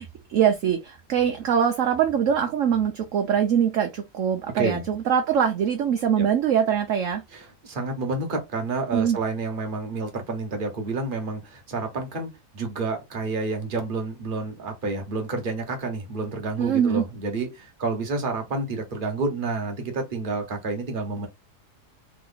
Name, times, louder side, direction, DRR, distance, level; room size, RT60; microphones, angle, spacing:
voice 1, 0.0-7.2 8.9-9.2 16.6-17.0, right 8 dB, 60° right, 1.0 m, -23 dB
voice 2, 7.3-21.3, right 3 dB, 35° right, 1.2 m, -29 dB
3.7 x 3.0 x 3.8 m
omnidirectional pair, 1.7 m